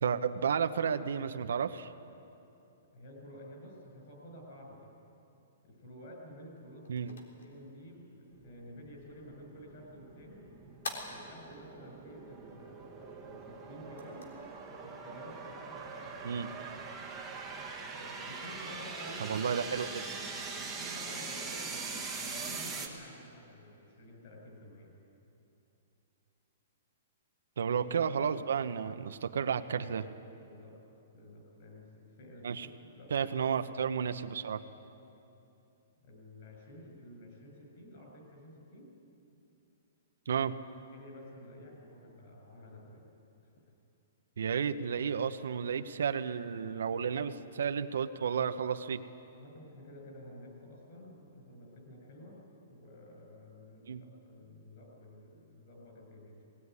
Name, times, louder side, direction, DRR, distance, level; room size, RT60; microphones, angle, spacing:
voice 1, 0.0-1.9 6.9-7.1 16.2-16.5 19.2-19.9 27.6-30.0 32.4-32.7 33.1-34.6 40.3-40.5 44.4-49.0 53.9-54.0, right 7 dB, 75° right, 8 dB, 0.9 m, -32 dB
voice 2, 2.9-4.9 5.6-10.5 11.1-14.3 14.8-16.5 17.9-19.6 20.2-24.9 27.6-27.8 30.4-30.7 31.1-31.9 32.2-32.7 32.9-33.3 33.6-33.7 36.0-38.9 40.9-43.1 43.4-43.5 49.3-52.4 52.7-56.4, left 1 dB, 35° left, -1 dB, 7.7 m, -51 dB
sound 1, 6.4-16.2, left 2 dB, 80° left, 3.6 m, -51 dB
sound 2, 8.3-22.9, right 4 dB, 5° right, 1.5 m, -42 dB
20.5 x 18.5 x 9.7 m, 2.8 s
hypercardioid pair, 180°, 0 cm